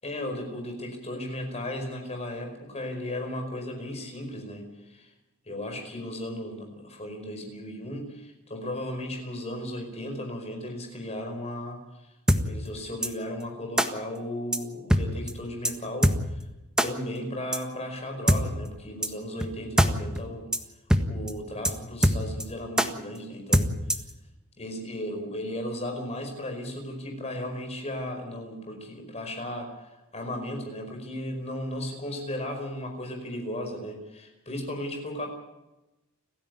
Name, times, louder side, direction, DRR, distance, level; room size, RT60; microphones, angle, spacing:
voice 1, 0.0-5.1 5.4-12.1 12.4-16.4 16.8-20.5 21.1-24.1 24.6-35.3, left 1 dB, 30° left, 3 dB, 5.1 m, -35 dB
sound 1, 12.3-12.4 13.0-13.1 13.8-13.9 14.5-14.6 14.9-15.0 15.3-15.4 15.6-15.7 16.0-16.2 16.8-16.9 17.5-17.6 18.3-18.4 19.0-19.1 19.4-19.5 19.8-19.9 20.2-20.3 20.5-20.6 20.9-21.0 21.3-21.4 21.6-21.7 22.0-22.4 22.8-22.9 23.5-24.1, equal, 5° right, 1.6 m, -21 dB
30.0 x 11.0 x 9.5 m, 1.0 s
head